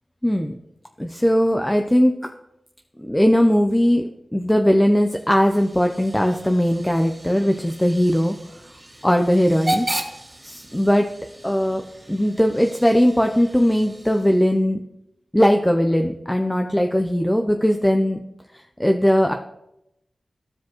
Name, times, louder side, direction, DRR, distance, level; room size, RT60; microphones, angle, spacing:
voice 1, 0.2-0.5 1.0-2.3 3.0-8.4 9.0-9.9 10.4-11.1 11.4-11.8 12.1-14.8 15.3-18.2 18.5-19.3, equal, 10° left, 4 dB, 0.5 m, -19 dB
Hiss / Train / Alarm, 4.9-14.6, right 1 dB, 20° right, 2.6 m, -35 dB
15.0 x 5.0 x 3.0 m, 0.84 s
wide cardioid pair, 75°, 0 cm